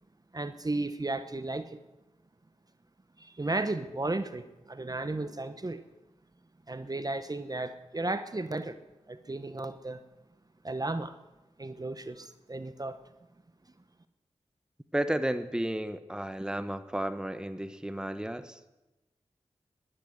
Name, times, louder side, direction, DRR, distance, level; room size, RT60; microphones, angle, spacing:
voice 1, 0.3-1.8 3.2-5.8 6.7-8.8 9.1-10.0 10.6-11.1 11.6-13.0, right 2 dB, 30° right, 11 dB, 1.0 m, -34 dB
voice 2, 14.9-18.6, right 1 dB, 5° right, 11 dB, 1.0 m, -32 dB
12.0 x 11.5 x 8.0 m, 1.0 s
cardioid pair, 40°, 12 cm